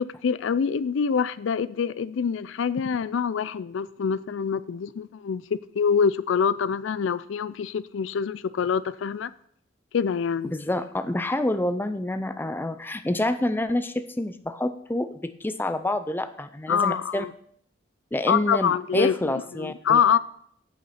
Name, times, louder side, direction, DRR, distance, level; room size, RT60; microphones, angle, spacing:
voice 1, 0.0-9.3 9.9-10.5 16.7-17.3 18.3-20.2, left 6 dB, 70° left, 0.4 m, -25 dB
voice 2, 10.5-17.3 18.1-20.0, left 1 dB, 10° left, 0.4 m, -28 dB
8.2 x 7.9 x 5.7 m
head